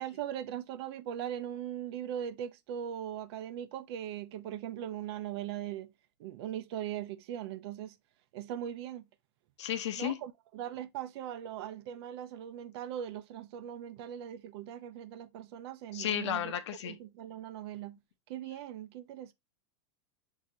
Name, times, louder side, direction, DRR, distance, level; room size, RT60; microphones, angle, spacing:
voice 1, 0.0-5.9 6.2-7.9 8.3-9.1 9.9-16.5 16.8-18.0 18.3-19.3, right 10 dB, 65° right, 0.6 m, -40 dB
voice 2, 9.6-10.2 15.9-17.0, left 10 dB, 85° left, 0.8 m, -33 dB
6.2 x 2.8 x 2.7 m
supercardioid pair, 135°, 14 cm